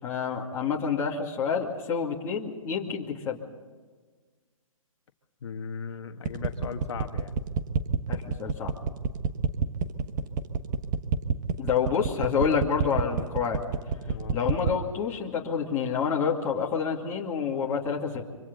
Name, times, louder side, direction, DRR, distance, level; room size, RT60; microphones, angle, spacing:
voice 1, 0.0-3.4 8.1-8.7 11.6-13.6 14.3-18.2, left 6 dB, 15° left, -4 dB, 2.5 m, -28 dB
voice 2, 5.4-7.4 14.1-14.4, left 6 dB, 50° left, 5 dB, 1.4 m, -37 dB
sound 1, 6.3-14.8, right 6 dB, 35° right, 1.2 m, -27 dB
26.0 x 25.0 x 4.0 m, 1.4 s
hypercardioid pair, 155°, 18 cm